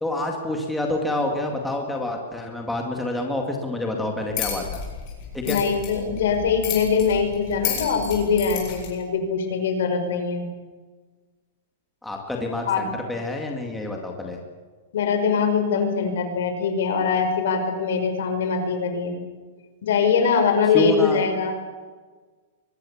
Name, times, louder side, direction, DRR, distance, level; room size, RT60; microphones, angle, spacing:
voice 1, 0.0-4.8 5.3-5.6 12.0-14.4 20.7-21.2, left 1 dB, 5° left, 1 dB, 2.0 m, -27 dB
sound 1, 4.3-8.9, left 8 dB, 30° left, 7.4 m, -32 dB
voice 2, 5.4-10.5 12.7-12.8 14.9-19.1 19.8-21.5, left 6 dB, 65° left, 6 dB, 5.7 m, -22 dB
23.5 x 21.5 x 7.2 m, 1.4 s
supercardioid pair, 175°, 0 cm